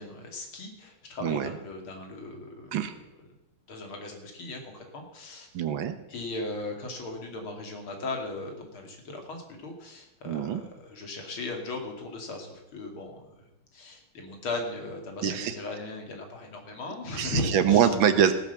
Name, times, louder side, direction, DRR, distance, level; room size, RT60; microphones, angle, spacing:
voice 1, 0.0-2.9 3.7-5.5 6.1-13.5 13.7-17.9, left 2 dB, 80° left, 3 dB, 3.3 m, -37 dB
voice 2, 1.2-1.5 2.7-2.9 5.5-6.0 10.3-10.6 15.2-15.6 17.2-18.3, right 8 dB, 70° right, 10 dB, 1.8 m, -24 dB
17.0 x 7.8 x 6.9 m, 0.97 s
omnidirectional pair, 2.3 m